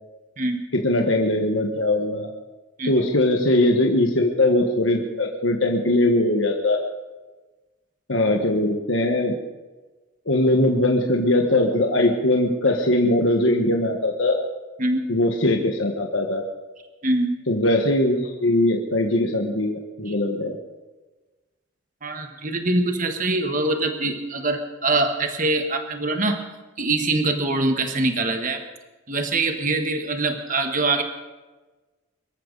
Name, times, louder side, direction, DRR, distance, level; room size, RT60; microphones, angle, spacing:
voice 1, 0.7-2.3 2.8-6.8 8.1-9.3 10.3-14.4 15.1-16.4 17.5-20.6, left 1 dB, 70° left, 1 dB, 1.5 m, -21 dB
voice 2, 17.0-17.4 20.1-20.2 22.0-26.4 26.8-28.6 29.1-31.0, right 2 dB, 40° right, 5 dB, 1.5 m, -23 dB
25.0 x 13.5 x 4.1 m, 1.2 s
head